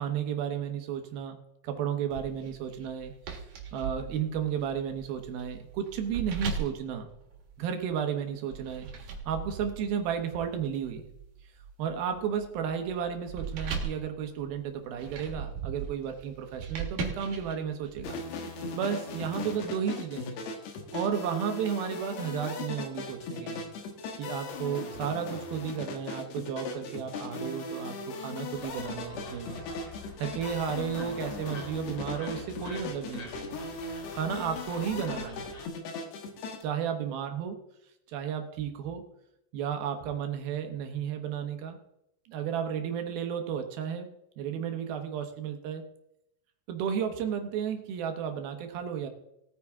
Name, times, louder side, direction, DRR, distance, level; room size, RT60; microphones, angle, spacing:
voice 1, 0.0-1.4 1.6-3.1 3.7-7.1 7.6-8.9 9.3-11.1 11.8-20.4 20.9-23.7 24.2-29.6 30.2-33.5 34.1-35.4 36.6-37.5 38.1-39.0 39.5-41.8 42.3-44.1 44.4-45.8 46.7-49.1, right 8 dB, 70° right, 6 dB, 2.6 m, -33 dB
sound 1, 2.1-7.9 8.5-18.0, right 6 dB, 55° right, 2.8 m, -39 dB
sound 2, 18.0-36.6, left 4 dB, 70° left, 3.5 m, -38 dB
sound 3, 28.5-35.7, left 3 dB, 45° left, 2.5 m, -46 dB
18.5 x 9.3 x 3.6 m, 0.82 s
omnidirectional pair, 5.0 m